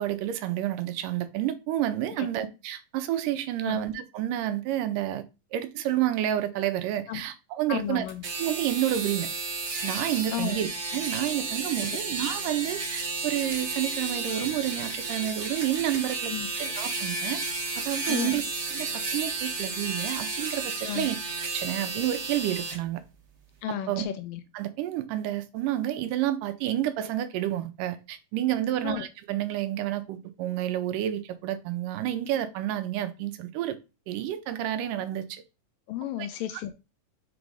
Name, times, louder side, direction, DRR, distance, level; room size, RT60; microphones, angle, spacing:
voice 1, 0.0-5.2 5.5-8.1 8.4-9.3 9.8-16.3 16.6-17.4 17.8-18.4 18.7-21.2 21.5-23.0 23.7-24.1 24.5-33.8 34.1-35.4, right 12 dB, 80° right, 2.2 m, -29 dB
voice 2, 7.7-8.2 10.3-10.6 16.3-16.5 18.1-18.4 20.8-21.1 23.6-24.4 28.8-29.1 35.9-36.7, left 12 dB, 85° left, 2.4 m, -33 dB
sound 1, 8.1-22.8, right 3 dB, 60° right, 0.7 m, -32 dB
6.1 x 3.8 x 4.8 m
omnidirectional pair, 3.9 m